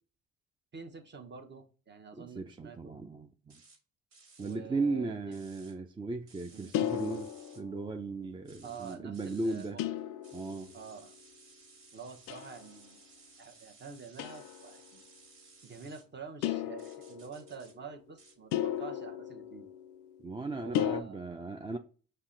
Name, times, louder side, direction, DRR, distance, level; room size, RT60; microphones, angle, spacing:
voice 1, 0.7-3.0 4.4-5.4 6.5-6.7 8.6-9.8 10.7-11.2 11.9-13.0 13.4-15.0 15.6-19.7 20.5-21.4, right 5 dB, 35° right, 0.9 m, -47 dB
voice 2, 2.2-3.6 4.4-7.3 7.6-9.8 10.3-10.7 20.2-21.8, right 3 dB, 15° right, 0.4 m, -36 dB
sound 1, 3.5-3.8 4.1-4.6 5.3-5.7 6.3-7.6 8.4-9.7 10.2-16.0 16.8-17.7 18.2-18.4, right 3 dB, 70° right, 1.6 m, -59 dB
sound 2, 6.7-8.1 9.8-10.9 12.3-12.7 14.2-14.7 16.4-17.5 18.5-20.2 20.7-21.0, left 11 dB, 85° left, 0.5 m, -35 dB
5.4 x 2.2 x 3.7 m
supercardioid pair, 65°, 31 cm